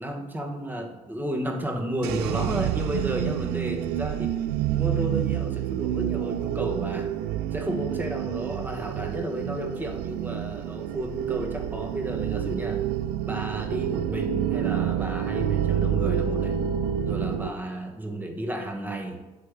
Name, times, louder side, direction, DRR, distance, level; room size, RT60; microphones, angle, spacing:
voice 1, 0.0-4.4 4.7-7.1 7.5-12.8 13.3-16.6 17.0-19.2, equal, 10° right, 3 dB, 1.3 m, -32 dB
sound 1, 2.0-17.5, right 10 dB, 80° right, 0.4 m, -28 dB
8.3 x 3.4 x 6.4 m, 1.1 s
supercardioid pair, 75°, 17 cm